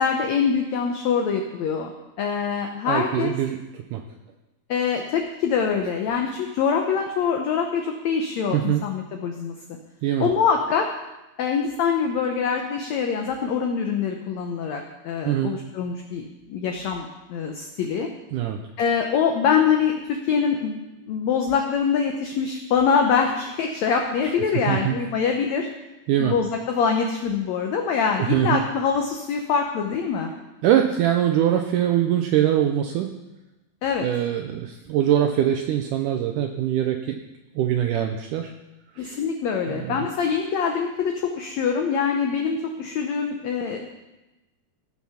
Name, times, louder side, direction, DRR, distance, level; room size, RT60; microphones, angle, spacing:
voice 1, 0.0-1.9 2.2-3.4 4.7-9.5 10.2-10.9 11.4-18.1 18.8-20.8 21.0-25.7 26.2-30.3 33.8-34.1 39.0-43.8, left 6 dB, 80° left, 3 dB, 1.6 m, -24 dB
voice 2, 2.9-4.0 8.5-8.8 10.0-10.3 15.2-15.5 18.3-18.6 24.7-25.0 26.1-26.4 28.2-28.6 30.6-33.1 34.0-37.2 37.6-38.5 39.0-39.2 39.7-40.0, right 11 dB, 85° right, 5 dB, 1.8 m, -23 dB
17.5 x 6.1 x 5.8 m, 1.0 s
omnidirectional pair, 4.4 m